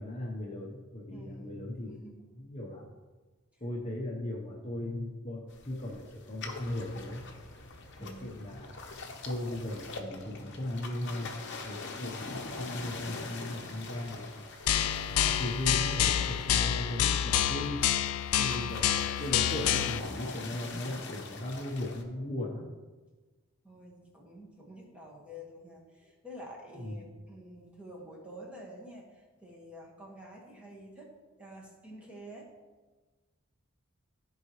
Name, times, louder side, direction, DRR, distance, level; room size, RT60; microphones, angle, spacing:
voice 1, 0.0-2.0 2.4-2.9 3.6-7.2 8.0-8.8 9.2-11.3 11.6-14.5 15.1-17.8 18.4-22.6 26.7-27.0, left 1 dB, 30° left, -2 dB, 0.9 m, -37 dB
voice 2, 1.1-1.6 1.9-2.2 8.0-8.4 18.3-18.8 23.6-32.5, equal, 5° right, -4 dB, 1.6 m, -48 dB
sound 1, 5.5-22.0, left 3 dB, 55° left, 0.9 m, -44 dB
sound 2, 14.7-20.0, left 10 dB, 75° left, 0.4 m, -28 dB
14.0 x 4.8 x 3.1 m, 1.3 s
head